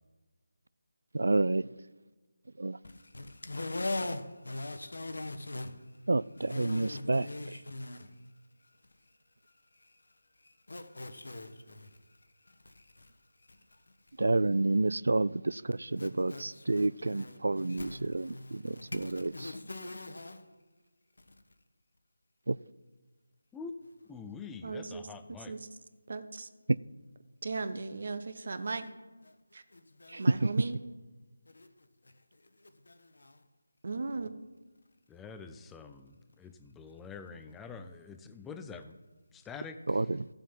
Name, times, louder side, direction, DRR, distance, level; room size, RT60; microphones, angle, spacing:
voice 1, 1.1-1.7 2.6-2.8 6.1-7.3 14.2-19.3 22.5-22.6 30.1-30.5 39.9-40.3, right 2 dB, 70° right, 0.3 m, -29 dB
voice 2, 2.8-6.0 6.4-8.3 8.6-9.2 9.4-14.1 16.0-20.5 21.2-21.4 29.3-29.4 29.7-30.3 31.5-33.4, left 2 dB, 75° left, 1.3 m, -43 dB
voice 3, 24.1-25.5 35.1-39.0 39.3-39.8, left 5 dB, 5° left, 0.5 m, -45 dB
voice 4, 24.6-25.1 25.4-25.7 26.1-26.5 27.4-28.8 29.5-29.6 30.2-30.8 33.8-34.3, right 3 dB, 50° right, 1.0 m, -37 dB
14.0 x 7.3 x 5.5 m
figure-of-eight pair, 165°, 0 cm